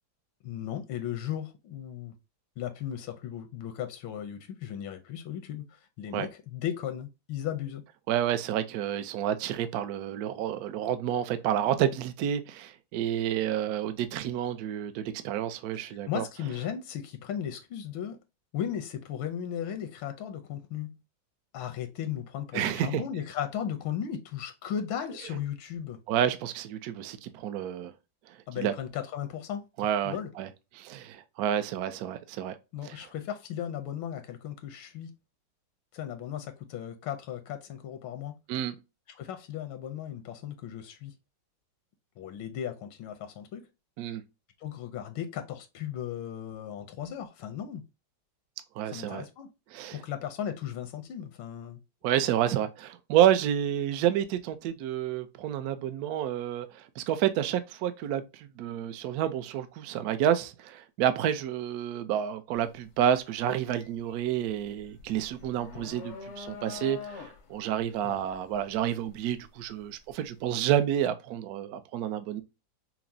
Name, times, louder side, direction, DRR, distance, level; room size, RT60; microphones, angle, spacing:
voice 1, 0.4-2.1 2.6-7.8 15.9-18.2 18.5-21.0 21.5-26.0 28.5-29.7 30.0-30.3 32.7-35.1 35.9-38.4 39.1-41.1 42.2-43.6 44.6-47.8 48.8-49.5 49.9-51.8 68.0-68.2, left 9 dB, 85° left, 1.4 m, -36 dB
voice 2, 8.1-16.2 22.5-23.0 26.1-27.9 28.3-28.7 29.8-30.5 30.8-32.6 32.8-33.0 38.5-38.7 44.0-44.2 48.8-49.3 49.7-50.0 52.0-72.4, right 10 dB, 75° right, 0.8 m, -29 dB
sound 1, 62.6-62.8 63.2-70.2, left 6 dB, 65° left, 0.7 m, -45 dB
5.8 x 2.0 x 2.6 m
omnidirectional pair, 2.2 m